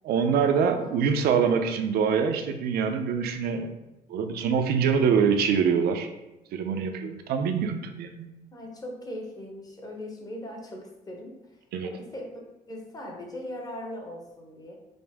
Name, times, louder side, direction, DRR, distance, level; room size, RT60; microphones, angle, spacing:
voice 1, 0.0-3.8 4.1-6.1 6.5-8.3 11.7-11.9, right 6 dB, 70° right, 6 dB, 0.5 m, -24 dB
voice 2, 8.5-11.4 11.8-12.4 12.7-14.7, left 1 dB, 20° left, 0 dB, 0.9 m, -39 dB
5.1 x 2.0 x 3.4 m, 0.98 s
cardioid pair, 110°, 17 cm